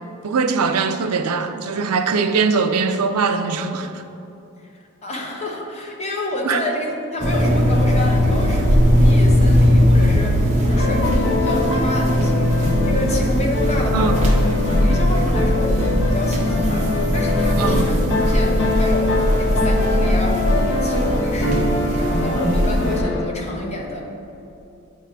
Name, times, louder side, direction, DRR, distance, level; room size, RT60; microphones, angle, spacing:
voice 1, 0.2-4.0 6.4-6.6 13.9-14.2 17.6-17.9, right 5 dB, 85° right, 8 dB, 0.5 m, -21 dB
voice 2, 4.6-14.4 14.8-16.9 17.1-24.1, left 1 dB, 30° left, -1 dB, 0.9 m, -29 dB
sound 1, 7.2-23.0, equal, 30° right, 0.9 m, -19 dB
sound 2, 10.7-23.2, left 2 dB, 55° left, 1.1 m, -23 dB
8.2 x 3.6 x 5.7 m, 2.8 s
head